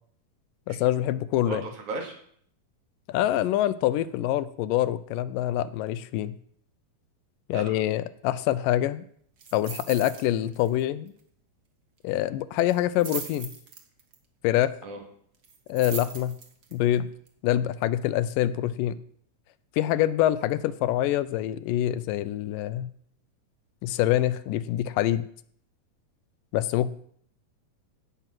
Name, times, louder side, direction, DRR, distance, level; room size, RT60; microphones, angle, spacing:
voice 1, 0.7-1.6 3.1-6.4 7.5-9.0 9.5-11.1 12.0-13.5 14.4-14.7 15.7-16.4 16.7-17.1 17.4-19.0 19.8-22.9 23.8-25.2 26.5-26.9, left 13 dB, 85° left, 15 dB, 2.3 m, -25 dB
voice 2, 1.4-2.2 7.5-7.8 14.8-15.0, right 3 dB, 65° right, 2 dB, 3.5 m, -35 dB
sound 1, 9.4-10.3 10.5-10.8 11.1-11.2 12.7-14.2 15.4-16.7 17.3-17.4, right 5 dB, 45° right, 1.3 m, -39 dB
17.0 x 6.8 x 6.1 m, 0.63 s
omnidirectional pair, 3.8 m